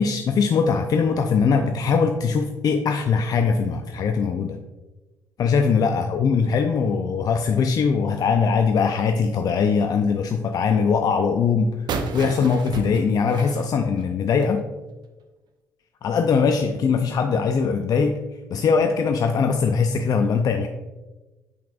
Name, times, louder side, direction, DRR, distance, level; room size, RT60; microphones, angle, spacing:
voice 1, 0.0-4.6 5.4-14.6 16.0-18.2 18.5-20.7, left 5 dB, 50° left, 6 dB, 0.5 m, -21 dB
sound 1, 11.9-14.6, right 4 dB, 60° right, 0.7 m, -32 dB
7.8 x 5.8 x 2.4 m, 1.1 s
hypercardioid pair, 50°, 9 cm